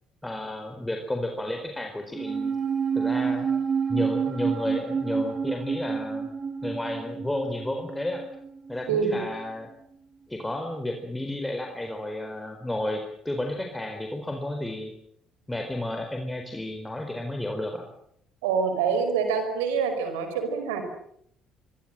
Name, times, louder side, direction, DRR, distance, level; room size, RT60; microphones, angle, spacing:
voice 1, 0.2-2.5 2.9-3.5 3.9-6.3 6.6-8.2 8.7-9.7 10.3-14.9 15.5-17.9, left 1 dB, 10° left, 3 dB, 4.5 m, -32 dB
sound 1, 2.1-8.7 9.0-9.1, right 6 dB, 45° right, 3.8 m, -29 dB
voice 2, 8.9-9.2 18.4-20.8, right 6 dB, 80° right, 7 dB, 5.1 m, -26 dB
25.0 x 23.5 x 7.7 m, 0.71 s
hypercardioid pair, 50°, 0 cm